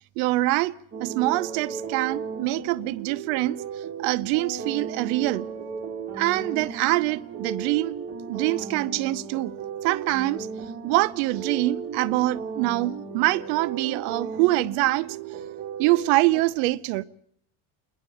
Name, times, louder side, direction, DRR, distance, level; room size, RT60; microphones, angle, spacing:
voice 1, 0.2-3.6 4.0-5.5 6.1-7.9 8.3-9.5 9.8-10.5 10.8-15.4 15.8-17.0, right 18 dB, 90° right, 0.9 m, -24 dB
sound 1, 0.9-16.4, right 6 dB, 30° right, 2.5 m, -35 dB
27.5 x 11.0 x 9.1 m
cardioid pair, 180°, 42 cm